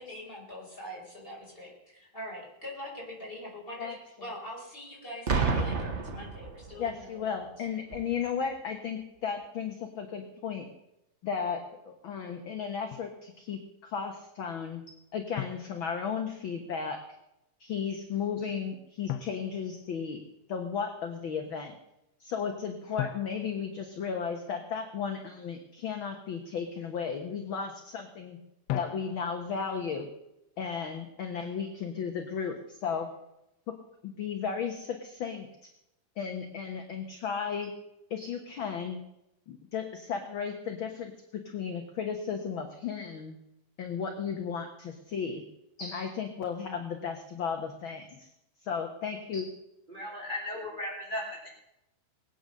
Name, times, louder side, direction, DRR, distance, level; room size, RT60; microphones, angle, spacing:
voice 1, 0.0-3.9 4.2-7.2, equal, 15° left, -3 dB, 5.5 m, -43 dB
Boom, 5.3-7.0 7.9-8.2, right 4 dB, 65° right, 0.6 m, -30 dB
voice 2, 6.8-10.7 11.2-14.8 15.1-17.0 17.6-20.2 20.5-21.7 22.2-28.4 28.7-30.1 30.6-33.1 33.7-33.8 34.0-35.5 36.2-37.7 38.1-39.0 39.5-41.1 41.4-43.4 43.8-45.4 45.8-48.3 48.6-49.5, left 6 dB, 55° left, 4 dB, 1.6 m, -34 dB
Drum, 12.9-13.2 15.4-16.5 19.1-20.5 23.0-24.7 28.7-29.6, left 12 dB, 80° left, 1.5 m, -39 dB
voice 3, 49.9-51.5, left 1 dB, 15° right, -1 dB, 3.2 m, -36 dB
20.0 x 9.1 x 6.6 m, 0.85 s
omnidirectional pair, 3.6 m